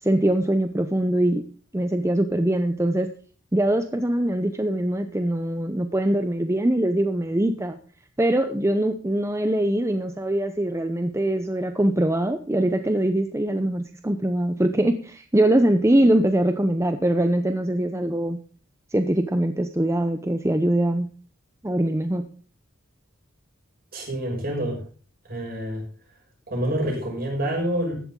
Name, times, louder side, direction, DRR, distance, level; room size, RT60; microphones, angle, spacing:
voice 1, 0.0-1.4 1.7-3.1 3.5-7.8 8.2-18.4 18.9-21.1 21.6-22.3, right 1 dB, 15° right, 8 dB, 0.7 m, -22 dB
voice 2, 23.9-24.8 25.3-25.8 26.5-28.0, right 1 dB, 50° right, -1 dB, 6.7 m, -27 dB
15.5 x 11.5 x 3.8 m, 0.41 s
head